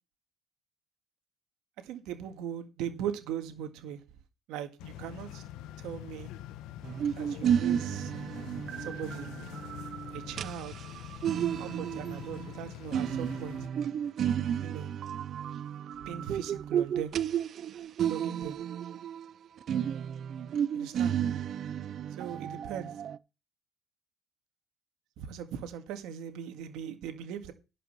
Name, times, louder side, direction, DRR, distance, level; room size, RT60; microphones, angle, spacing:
voice 1, 1.8-4.0 4.5-5.4 5.8-6.3 7.2-8.1 8.8-9.3 10.1-10.9 11.6-13.6 14.6-14.9 16.0-17.1 18.0-18.6 20.7-21.2 22.2-22.9 25.2-27.5, right 9 dB, 75° right, 1.9 m, -39 dB
sound 1, 4.8-13.7, left 12 dB, 80° left, 0.9 m, -44 dB
sound 2, 6.8-19.3 19.6-23.2, right 9 dB, 50° right, 0.5 m, -32 dB
11.5 x 5.5 x 6.8 m
cardioid pair, 125°, 0 cm